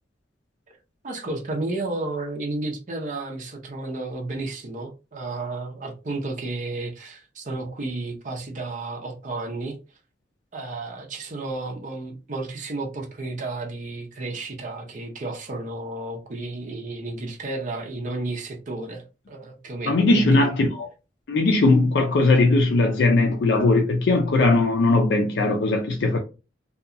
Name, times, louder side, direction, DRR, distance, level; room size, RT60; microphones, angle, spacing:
voice 1, 1.0-9.8 10.5-20.5, right 2 dB, 45° right, 0.6 m, -32 dB
voice 2, 19.9-20.9 21.3-26.2, left 2 dB, 75° left, 0.4 m, -19 dB
2.8 x 2.2 x 2.5 m
head